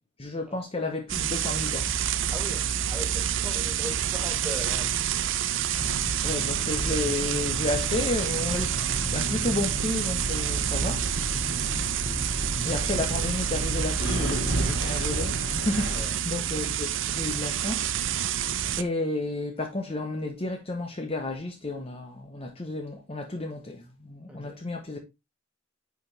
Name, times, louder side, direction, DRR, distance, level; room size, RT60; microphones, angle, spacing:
voice 1, 0.2-1.9 6.2-8.7 9.1-11.1 11.4-11.9 12.6-17.9 18.8-25.0, left 2 dB, 30° left, 0.9 m, -32 dB
sound 1, 1.1-18.8, right 10 dB, 65° right, 0.5 m, -28 dB
voice 2, 2.3-5.5 15.9-16.1 24.3-24.6, equal, 5° right, 2.0 m, -40 dB
sound 2, 5.7-16.0, right 1 dB, 70° left, 3.1 m, -32 dB
9.3 x 4.5 x 3.3 m
head